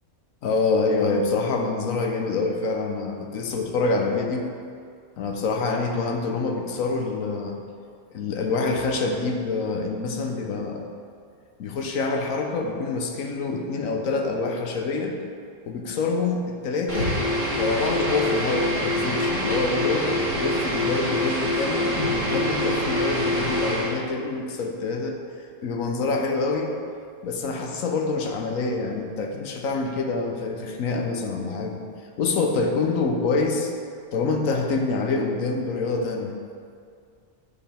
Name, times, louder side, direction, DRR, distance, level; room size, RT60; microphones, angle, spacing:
voice 1, 0.4-4.5 5.2-7.6 8.1-10.9 11.6-15.2 15.6-17.2 17.5-25.2 25.6-26.7 27.2-31.8 32.2-33.7 34.1-36.4, left 3 dB, 90° left, 3 dB, 1.2 m, -26 dB
sound 1, 16.9-24.0, left 1 dB, 35° left, 2.0 m, -25 dB
9.3 x 5.1 x 3.4 m, 2.2 s
omnidirectional pair, 1.4 m